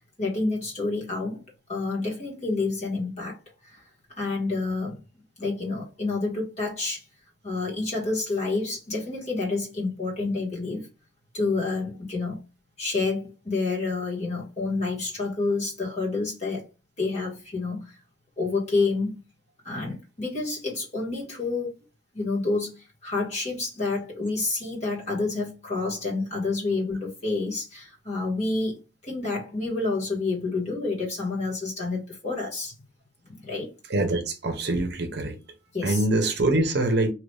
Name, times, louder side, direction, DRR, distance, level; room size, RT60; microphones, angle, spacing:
voice 1, 0.2-1.4 1.7-3.4 3.6-3.8 4.2-5.0 5.4-7.0 7.4-10.9 11.3-12.4 12.8-16.7 17.0-17.9 18.4-19.2 19.6-21.7 22.1-32.7 33.2-33.7 35.7-36.0, left 3 dB, 35° left, 1.4 m, -29 dB
voice 2, 33.9-35.4 35.8-37.1, right 2 dB, 55° right, 0.7 m, -24 dB
2.9 x 2.6 x 3.2 m
head